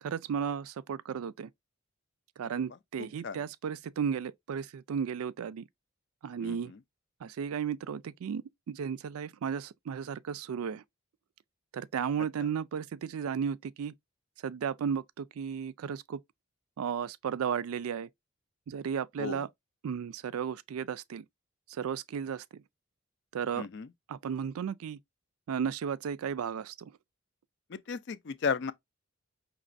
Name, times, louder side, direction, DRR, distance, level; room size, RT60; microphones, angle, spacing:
voice 1, 0.0-1.5 2.4-5.7 6.2-6.7 7.2-10.8 11.7-13.9 14.4-16.2 16.8-18.1 18.7-19.5 19.8-21.2 21.7-22.6 23.3-23.7 24.1-25.0 25.5-26.9, right 7 dB, 85° right, 0.3 m, -34 dB
voice 2, 6.4-6.8 19.2-19.4 23.5-23.9 27.7-28.7, left 5 dB, 50° left, 0.4 m, -34 dB
5.1 x 2.9 x 2.5 m
head